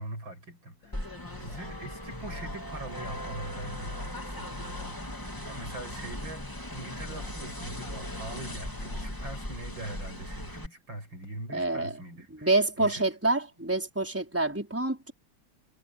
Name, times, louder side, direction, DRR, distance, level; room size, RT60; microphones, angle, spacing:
voice 1, 0.0-5.1 5.4-12.5 12.8-13.0, right 1 dB, 75° right, 9.0 m, -42 dB
sound 1, 0.8-9.1, left 3 dB, 65° left, 3.6 m, -47 dB
sound 2, 0.9-10.7, left 1 dB, 10° left, 2.7 m, -39 dB
voice 2, 11.5-11.9 12.3-15.1, right 2 dB, 5° right, 4.7 m, -27 dB
omnidirectional pair, 2.1 m